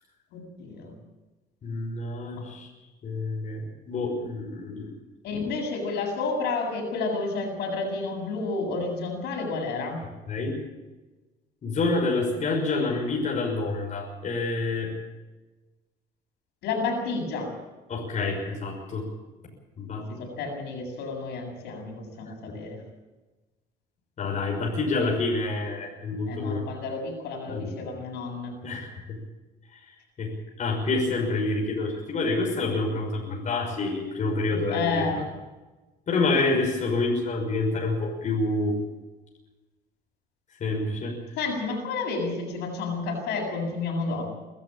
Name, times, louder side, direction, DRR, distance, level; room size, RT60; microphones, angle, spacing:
voice 1, 0.3-0.9 2.3-2.5 5.2-10.0 16.6-17.5 20.1-22.8 26.3-28.6 34.7-35.2 41.4-44.3, left 3 dB, 80° left, 1 dB, 7.7 m, -30 dB
voice 2, 1.6-2.7 3.0-4.9 10.3-10.6 11.6-14.9 17.9-19.1 19.8-20.0 24.2-26.6 27.5-27.8 28.6-29.2 30.2-35.0 36.1-38.8 40.6-41.2, left 3 dB, 45° left, 0 dB, 6.0 m, -27 dB
23.5 x 13.5 x 8.8 m, 1.2 s
cardioid pair, 110°, 17 cm